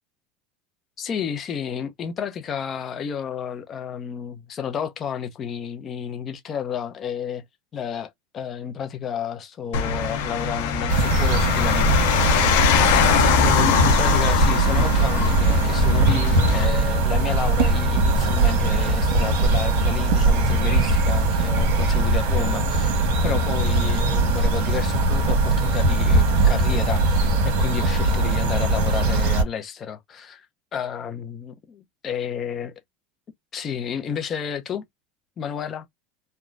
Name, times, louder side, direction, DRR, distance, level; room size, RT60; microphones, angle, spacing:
voice 1, 1.0-7.4 7.7-12.6 12.9-22.9 23.2-30.5 30.7-32.7 33.5-34.9 35.4-35.9, left 7 dB, 35° left, 0.7 m, -31 dB
sound 1, 9.7-16.7, left 8 dB, 75° left, 0.9 m, -22 dB
sound 2, 10.9-29.4, right 2 dB, 70° right, 1.2 m, -20 dB
3.1 x 2.2 x 2.5 m
supercardioid pair, 110°, 0 cm